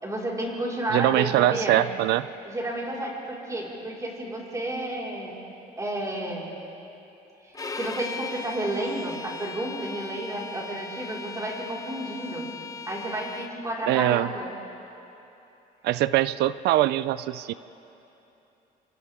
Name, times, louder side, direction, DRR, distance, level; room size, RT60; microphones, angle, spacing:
voice 1, 0.0-1.8 2.4-5.3 5.8-6.5 7.4-7.5 7.8-12.5 12.9-14.5, right 1 dB, 20° right, -4 dB, 4.8 m, -31 dB
voice 2, 0.9-2.3 13.9-14.3 15.8-17.5, right 15 dB, 80° right, 16 dB, 0.5 m, -22 dB
Bowed string instrument, 7.5-13.5, left 4 dB, 20° left, 1.0 m, -38 dB
28.0 x 26.0 x 3.7 m, 2.9 s
cardioid pair, 110°, 17 cm